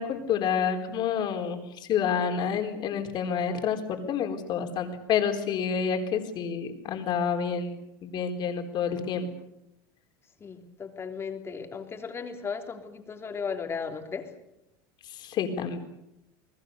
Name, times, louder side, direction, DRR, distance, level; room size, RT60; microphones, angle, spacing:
voice 1, 0.0-1.6 1.9-7.8 8.0-9.3 15.2-15.8, left 7 dB, 45° left, 5 dB, 4.2 m, -28 dB
voice 2, 10.4-14.3, left 6 dB, 25° left, 4 dB, 3.4 m, -36 dB
30.0 x 20.0 x 6.8 m, 0.84 s
supercardioid pair, 125°, 11 cm